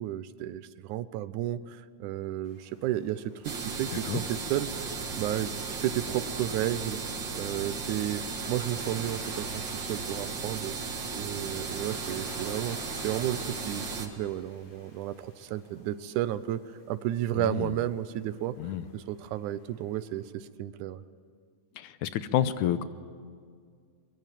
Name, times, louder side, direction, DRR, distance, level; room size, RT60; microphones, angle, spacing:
voice 1, 0.0-4.7 5.2-7.0 7.3-8.2 8.5-10.8 11.1-12.8 13.0-16.6 16.9-18.6 18.9-21.0, right 12 dB, 85° right, 14 dB, 2.3 m, -32 dB
Waves surf, 2.4-20.3, left 1 dB, 55° left, 6.0 m, -52 dB
sound 1, 3.4-14.1, right 4 dB, 45° right, 2.2 m, -36 dB
voice 2, 17.4-17.7 18.6-18.8 21.8-22.8, left 11 dB, 80° left, 13 dB, 2.2 m, -29 dB
23.5 x 22.0 x 9.1 m, 2.1 s
omnidirectional pair, 3.4 m